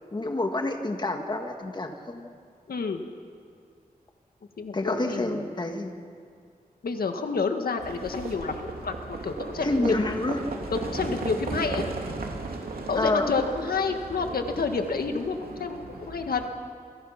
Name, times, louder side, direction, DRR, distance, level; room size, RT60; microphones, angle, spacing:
voice 1, 0.1-2.3 4.7-6.0 9.6-10.4 13.0-13.3, left 2 dB, 30° left, 4 dB, 1.9 m, -28 dB
voice 2, 2.7-3.0 4.6-5.5 6.8-10.1 10.7-11.8 12.9-16.4, left 4 dB, 85° left, 5 dB, 1.8 m, -29 dB
Livestock farm animals working animals, 7.8-16.4, right 3 dB, 80° right, 2.9 m, -36 dB
28.5 x 24.0 x 5.9 m, 2.2 s
wide cardioid pair, 125°, 15 cm